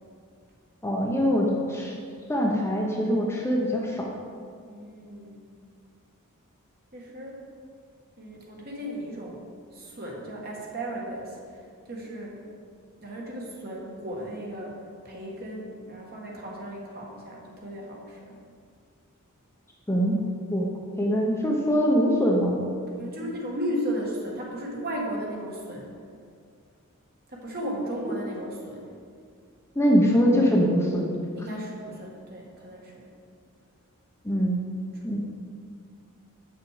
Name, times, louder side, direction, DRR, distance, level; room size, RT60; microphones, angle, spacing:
voice 1, 0.8-1.9 2.3-4.1 19.9-20.2 20.5-20.7 21.0-22.6 29.8-31.1 34.2-34.6 35.0-35.2, equal, 10° left, -2 dB, 0.8 m, -23 dB
voice 2, 4.6-5.5 6.9-7.4 8.2-12.4 13.0-18.4 22.9-26.0 27.3-29.0 31.4-33.1 34.9-35.2, equal, 45° right, -2 dB, 1.7 m, -35 dB
8.0 x 6.2 x 5.0 m, 2.2 s
head